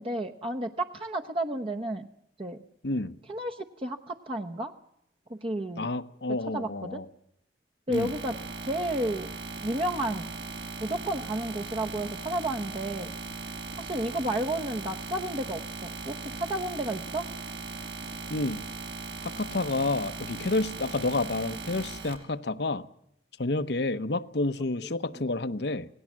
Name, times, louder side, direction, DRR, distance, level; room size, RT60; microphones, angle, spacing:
voice 1, 0.0-2.1 2.4-2.6 3.3-4.7 5.3-5.9 6.5-7.0 7.9-8.3 8.6-9.3 9.6-10.3 10.8-13.1 13.8-17.3, right 1 dB, 30° right, 1.0 m, -32 dB
voice 2, 2.8-3.2 5.8-7.0 7.9-8.1 18.3-18.6 19.2-22.9 23.4-25.9, left 2 dB, 70° left, 1.0 m, -29 dB
sound 1, 7.9-22.1, right 3 dB, 75° right, 5.2 m, -39 dB
27.0 x 18.5 x 7.5 m
head